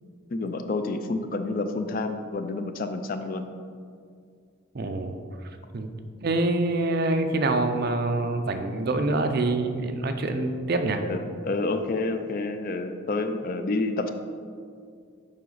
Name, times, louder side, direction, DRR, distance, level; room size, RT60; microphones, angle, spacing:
voice 1, 0.3-3.5 4.8-4.9 11.1-14.1, left 3 dB, 40° left, 7 dB, 0.4 m, -29 dB
voice 2, 4.7-5.2 5.4-5.9 6.2-11.0, right 2 dB, 45° right, 6 dB, 0.5 m, -26 dB
7.4 x 4.9 x 4.0 m, 2.2 s
head